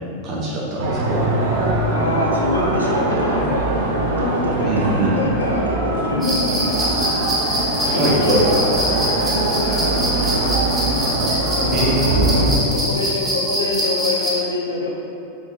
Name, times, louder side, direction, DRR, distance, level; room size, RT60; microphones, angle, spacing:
voice 1, 0.2-1.2 4.6-5.2 7.9-8.4 11.7-12.7, right 1 dB, 35° right, -5 dB, 1.2 m, -22 dB
sound 1, 0.8-12.5, right 2 dB, 55° right, 1.0 m, -22 dB
voice 2, 1.9-3.7 4.0-7.0 7.7-10.9 11.5-11.8 12.2-14.9, left 2 dB, 75° left, -2 dB, 0.9 m, -26 dB
sound 2, 6.2-14.3, equal, 10° right, 1.3 m, -24 dB
5.4 x 5.1 x 3.9 m, 2.7 s
figure-of-eight pair, 90°, 0 cm